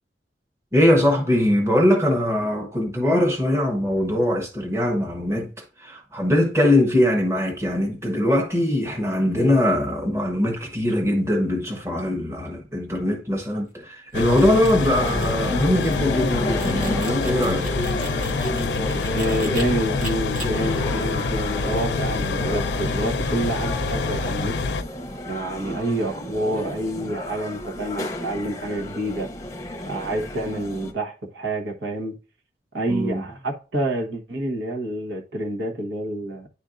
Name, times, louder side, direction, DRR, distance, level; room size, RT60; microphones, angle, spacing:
voice 1, 0.7-5.5 5.8-17.7 32.9-33.2, left 1 dB, 15° right, 1.1 m, -21 dB
sound 1, 14.1-24.8, left 4 dB, 70° left, 0.6 m, -26 dB
sound 2, 14.1-19.6 20.0-20.5, right 2 dB, 45° right, 1.4 m, -39 dB
sound 3, 15.0-30.9, left 1 dB, 15° left, 0.7 m, -32 dB
voice 2, 19.1-24.5 25.3-29.3 29.8-32.2 32.7-36.5, right 1 dB, 75° right, 1.2 m, -28 dB
9.9 x 4.3 x 2.6 m
head